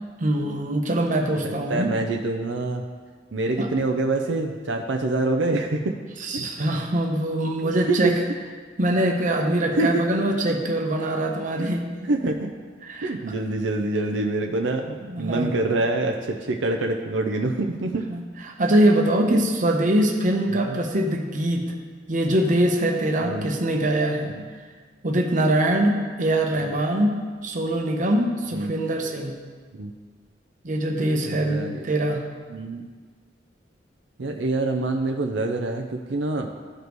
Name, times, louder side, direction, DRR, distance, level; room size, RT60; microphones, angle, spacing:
voice 1, 0.2-1.9 3.6-3.7 6.2-8.1 8.8-11.8 12.8-13.1 15.0-15.5 18.1-21.6 22.1-24.3 25.0-27.2 27.4-29.4 30.6-32.2, right 1 dB, 45° right, 2 dB, 0.9 m, -23 dB
voice 2, 1.4-2.8 3.3-6.0 6.3-6.5 7.9-8.2 9.7-10.0 11.6-11.7 12.0-12.5 13.0-18.0 19.3-19.4 20.5-20.7 23.2-23.5 24.3-24.4 28.5-28.7 29.7-29.9 31.2-31.8 32.5-32.8 34.2-36.5, right 2 dB, 80° right, 2 dB, 0.6 m, -26 dB
14.0 x 5.1 x 3.1 m, 1.5 s
head